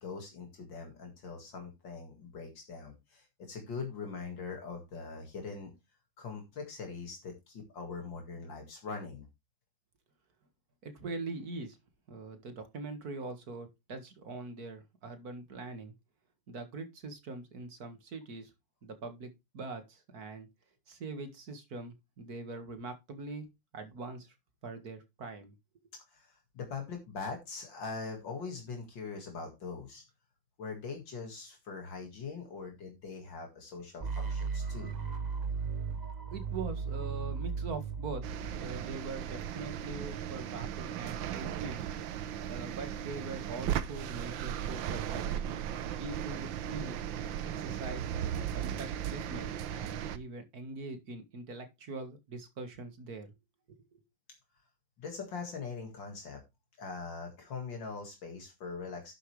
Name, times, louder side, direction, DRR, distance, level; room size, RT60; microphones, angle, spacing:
voice 1, 0.0-5.7 6.2-9.3 26.1-30.0 30.6-34.9 55.0-56.4 56.8-59.1, left 4 dB, 75° left, 2.7 m, -42 dB
voice 2, 10.8-11.8 12.1-15.9 16.5-18.5 18.8-20.5 20.9-23.5 23.7-24.3 24.6-25.5 36.3-38.2 38.5-41.8 42.4-45.4 45.7-47.0 47.6-48.0 48.5-53.3 53.7-54.0, right 3 dB, 50° right, 2.2 m, -43 dB
sound 1, 34.0-39.9, right 5 dB, 35° right, 0.7 m, -37 dB
sound 2, 38.2-50.2, right 10 dB, 85° right, 1.5 m, -37 dB
11.5 x 7.6 x 3.2 m
omnidirectional pair, 2.1 m